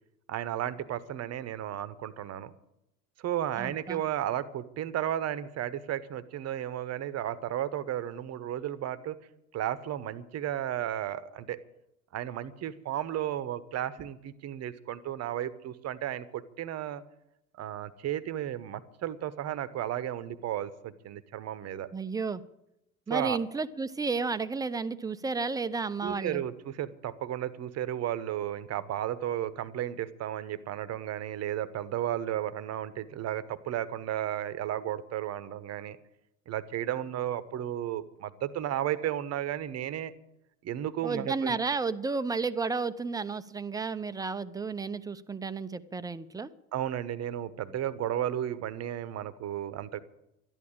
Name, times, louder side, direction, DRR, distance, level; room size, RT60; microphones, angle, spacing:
voice 1, 0.3-2.5 3.2-9.2 9.5-11.6 12.1-17.0 17.6-21.9 23.1-23.4 26.0-36.0 36.5-40.1 40.6-41.6 46.7-50.0, right 11 dB, 35° right, 16 dB, 1.0 m, -33 dB
voice 2, 3.6-4.0 21.9-22.4 23.1-26.4 41.0-46.5, right 4 dB, 10° right, 13 dB, 0.6 m, -32 dB
12.5 x 10.5 x 8.8 m, 0.85 s
figure-of-eight pair, 70°, 44 cm